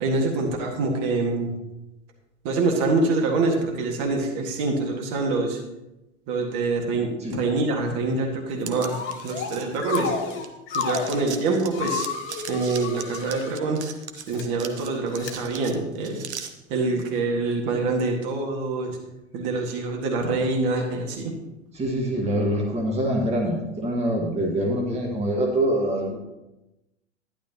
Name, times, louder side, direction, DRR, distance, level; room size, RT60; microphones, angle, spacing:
voice 1, 0.0-1.5 2.4-5.6 6.3-9.0 9.2-10.1 10.7-12.1 12.5-13.8 14.3-16.2 16.7-19.0 19.3-21.3, right 3 dB, 45° right, 1 dB, 1.9 m, -25 dB
sound 1, 8.6-10.4 10.7-16.5, right 8 dB, 65° right, 1.1 m, -39 dB
sound 2, 8.9-9.5 9.8-11.2 11.7-13.5 14.2-14.4 15.2-15.3, left 7 dB, 35° left, 1.3 m, -31 dB
voice 2, 21.7-26.2, right 1 dB, 15° right, 0 dB, 1.7 m, -25 dB
12.0 x 10.5 x 2.9 m, 0.96 s
figure-of-eight pair, 90°, 37 cm